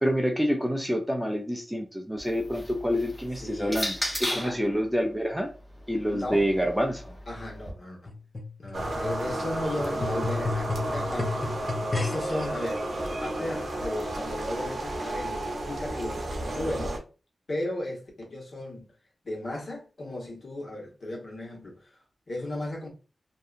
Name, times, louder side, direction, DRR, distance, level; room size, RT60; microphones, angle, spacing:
voice 1, 0.0-3.9 4.2-5.5 5.9-7.2, equal, 5° right, 0.4 m, -27 dB
sound 1, 2.2-4.6 5.6-7.7, left 1 dB, 20° left, 1.0 m, -36 dB
voice 2, 3.3-3.8 4.3-4.6 6.1-6.5 7.3-8.0 8.6-16.3 16.5-17.0 17.5-18.9 19.2-22.0 22.3-22.9, left 1 dB, 65° left, 1.2 m, -35 dB
sound 2, 8.1-12.5 13.2-13.3, left 3 dB, 45° left, 0.7 m, -33 dB
sound 3, 8.7-17.0, right 1 dB, 75° right, 0.7 m, -32 dB
2.7 x 2.2 x 2.5 m
wide cardioid pair, 75°, 0 cm